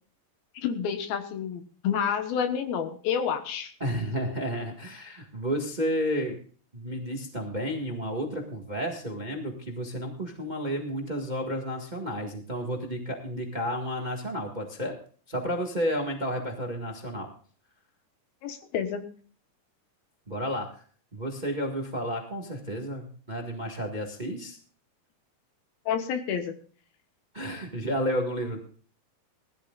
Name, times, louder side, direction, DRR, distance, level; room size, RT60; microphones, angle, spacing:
voice 1, 0.5-3.7 18.4-19.0 25.9-26.5, left 7 dB, 85° left, 7 dB, 3.1 m, -29 dB
voice 2, 3.8-6.4 6.7-14.9 15.3-17.3 20.3-20.8 21.1-24.6 27.3-28.6, equal, 45° right, 2 dB, 0.5 m, -31 dB
20.0 x 13.0 x 2.4 m, 0.42 s
omnidirectional pair, 4.2 m